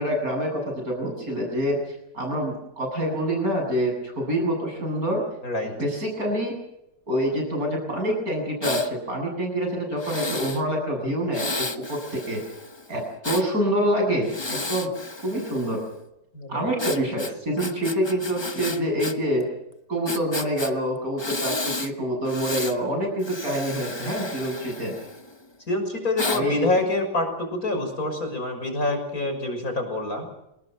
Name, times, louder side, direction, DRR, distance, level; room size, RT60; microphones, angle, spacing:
voice 1, 0.0-1.8 2.1-5.2 5.6-6.5 7.1-12.4 12.9-14.9 15.2-15.8 16.5-19.5 19.9-24.9 26.3-26.7, equal, 45° right, 1 dB, 8.7 m, -26 dB
Breathing, 8.6-8.9 10.0-10.6 11.3-13.5 14.2-15.9 16.8-19.1 19.4-19.5 20.1-20.7 21.2-21.9 22.3-22.8 23.2-25.4 26.2-26.4, left 2 dB, 20° left, 0.9 m, -32 dB
voice 2, 16.3-16.7 25.7-30.3, left 2 dB, 45° left, 5 dB, 6.5 m, -26 dB
28.0 x 19.5 x 6.3 m, 0.84 s
omnidirectional pair, 2.1 m